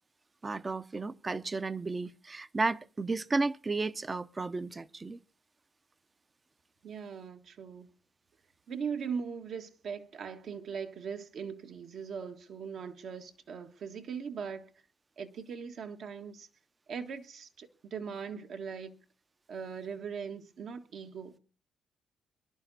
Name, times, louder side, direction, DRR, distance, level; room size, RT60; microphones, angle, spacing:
voice 1, 0.4-5.2, right 3 dB, 25° right, 0.7 m, -33 dB
voice 2, 6.8-7.9 8.7-14.7 15.2-16.5 16.9-18.9 19.5-21.3, right 6 dB, 65° right, 1.5 m, -40 dB
23.0 x 11.0 x 4.1 m
cardioid pair, 90°, 0 cm